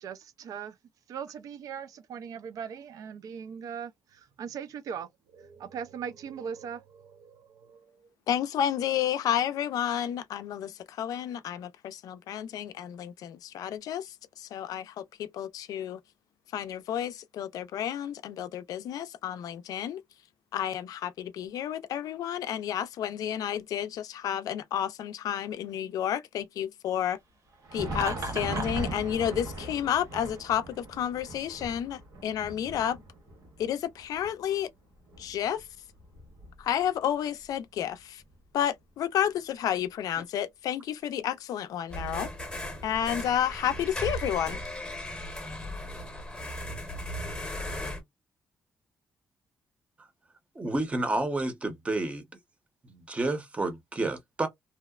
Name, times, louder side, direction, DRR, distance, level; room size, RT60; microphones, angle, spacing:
voice 1, 0.0-0.7 1.1-7.8, right 7 dB, 65° right, 0.4 m, -40 dB
voice 2, 8.3-16.0 16.5-20.0 20.5-27.2 27.7-33.0 33.6-34.7 35.2-35.6 36.6-38.2 38.5-42.3 42.8-44.6, left 10 dB, 70° left, 0.4 m, -31 dB
Thunder, 27.5-37.0 37.3-37.5 38.2-38.4 39.3-39.4, right 1 dB, 90° right, 1.3 m, -40 dB
Laughter, 27.9-28.9, right 2 dB, 50° right, 0.9 m, -35 dB
sound 1, 41.9-48.0, equal, 15° left, 0.8 m, -37 dB
voice 3, 50.6-52.2 52.9-54.5, right 2 dB, 20° right, 0.7 m, -30 dB
2.8 x 2.0 x 2.3 m
cardioid pair, 120°, 6 cm